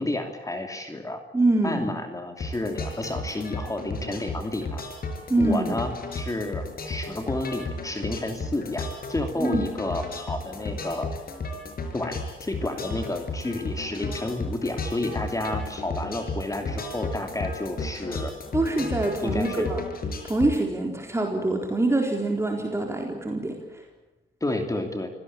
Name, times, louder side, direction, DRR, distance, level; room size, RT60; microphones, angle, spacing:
voice 1, 0.0-1.2 1.6-4.8 5.4-11.1 11.9-18.3 19.2-19.7 24.4-25.1, left 2 dB, 15° left, 5 dB, 2.8 m, -31 dB
voice 2, 1.3-1.9 5.3-5.8 9.4-9.6 18.5-19.8 20.2-23.8, right 2 dB, 15° right, 1 dB, 4.0 m, -25 dB
sound 1, 2.4-20.6, left 2 dB, 50° left, 5.5 m, -34 dB
25.5 x 17.5 x 8.8 m, 1.0 s
cardioid pair, 90°, 20 cm